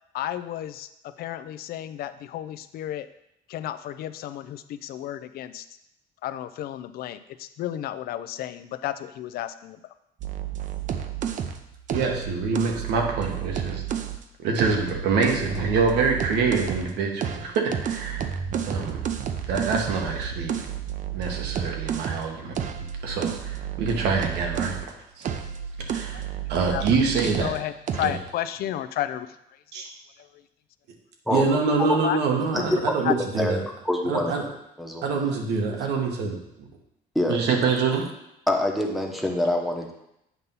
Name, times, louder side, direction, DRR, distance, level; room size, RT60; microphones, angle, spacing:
voice 1, 0.1-3.1 3.5-5.6 6.2-9.8 26.1-26.2 26.7-26.8 27.2-29.3 30.2-30.3 32.0-32.7 33.0-33.1, left 12 dB, 65° left, 13 dB, 0.4 m, -32 dB
sound 1, 10.2-14.2 14.6-16.9 17.2-24.9 25.2-27.6 27.9-28.2, right 9 dB, 50° right, 0.6 m, -31 dB
voice 2, 11.9-13.8 14.4-19.0 19.5-20.6 21.1-22.5 23.0-24.8 25.2-25.3 25.9-26.2 26.5-27.5 28.0-28.1 29.7-29.9 31.3-33.6 34.0-34.4 35.0-36.7 37.3-38.0, right 4 dB, 85° right, 2 dB, 1.2 m, -25 dB
voice 3, 32.5-32.9 33.3-33.5 33.8-34.4 34.8-35.0 37.1-37.4 38.5-39.9, left 1 dB, ahead, 0 dB, 0.9 m, -25 dB
8.1 x 2.9 x 5.3 m, 0.82 s
cardioid pair, 110°, 17 cm